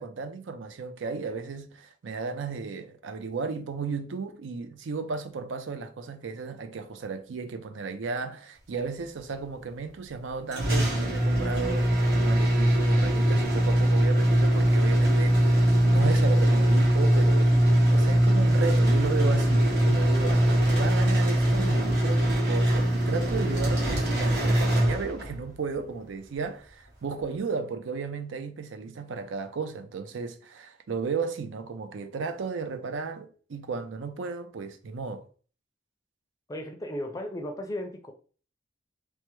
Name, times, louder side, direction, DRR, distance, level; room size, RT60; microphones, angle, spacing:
voice 1, 0.0-35.2, right 5 dB, 85° right, 0.4 m, -34 dB
sound 1, 10.5-25.5, right 1 dB, 60° right, 1.1 m, -22 dB
voice 2, 36.5-38.1, left 1 dB, 20° left, 0.4 m, -35 dB
3.3 x 2.1 x 3.0 m
head